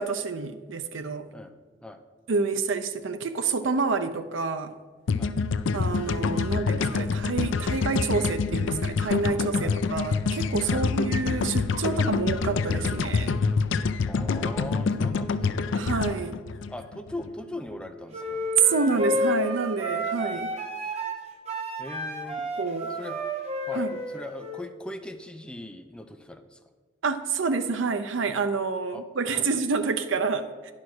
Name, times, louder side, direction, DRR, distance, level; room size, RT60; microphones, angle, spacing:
voice 1, 0.0-1.3 2.3-4.7 5.7-13.3 15.7-16.4 18.6-20.5 22.6-22.9 23.7-24.0 27.0-30.7, right 4 dB, 85° right, 9 dB, 0.6 m, -28 dB
sound 1, 5.1-17.3, left 4 dB, 75° left, 0.4 m, -26 dB
voice 2, 14.1-15.8 16.7-18.4 21.8-22.4 23.0-23.2 23.7-23.9 24.1-26.6 28.9-29.0 29.3-29.5, left 1 dB, 5° left, 6 dB, 0.5 m, -39 dB
sound 2, 18.1-24.6, equal, 35° right, 1.2 m, -31 dB
10.5 x 4.9 x 6.0 m, 1.4 s
head